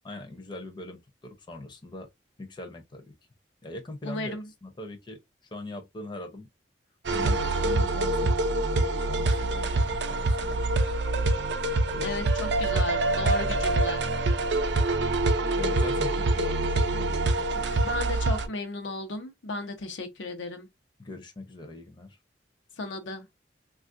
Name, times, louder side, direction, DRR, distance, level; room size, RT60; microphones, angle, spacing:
voice 1, 0.0-2.1 2.4-3.1 3.6-5.2 5.5-6.5 7.1-10.9 11.9-12.1 15.5-17.9 21.0-22.2, left 1 dB, 25° left, 0.6 m, -41 dB
voice 2, 4.0-4.5 12.0-14.0 17.8-20.7 22.8-23.3, left 2 dB, 90° left, 0.8 m, -35 dB
sound 1, 7.0-18.5, right 2 dB, 70° right, 0.5 m, -25 dB
3.3 x 2.4 x 2.5 m
head